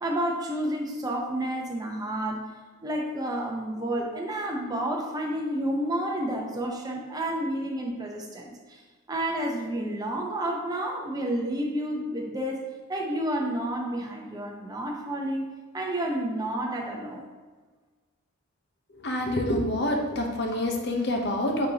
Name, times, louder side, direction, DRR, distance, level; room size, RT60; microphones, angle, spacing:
voice 1, 0.0-2.5 2.8-8.8 9.1-12.6 12.9-17.2, right 1 dB, 15° right, 0 dB, 0.7 m, -30 dB
voice 2, 19.0-21.7, left 1 dB, 50° left, 2 dB, 0.8 m, -27 dB
8.4 x 4.1 x 2.8 m, 1.4 s
head